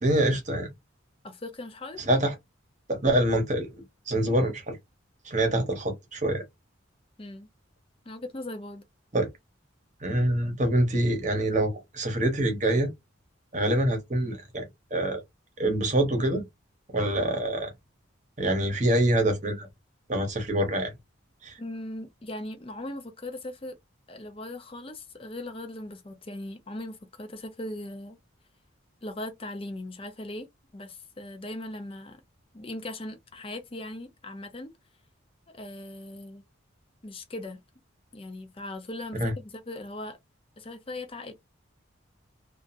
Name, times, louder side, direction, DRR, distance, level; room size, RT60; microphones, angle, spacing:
voice 1, 0.0-0.7 2.0-2.3 2.9-3.7 4.1-4.8 5.2-6.4 9.1-9.3 10.0-12.9 13.5-15.2 15.6-16.4 16.9-17.7 18.4-19.7 20.1-20.9 21.4-21.6 39.2-39.3, right 1 dB, 35° right, 1.0 m, -25 dB
voice 2, 1.2-2.0 7.2-7.5 8.1-8.9 21.6-23.8 24.1-28.2 29.0-30.5 30.7-32.2 32.5-34.7 35.5-36.4 37.0-37.6 38.1-40.2 40.6-41.3, left 1 dB, 25° left, 0.6 m, -39 dB
2.8 x 2.4 x 2.5 m
head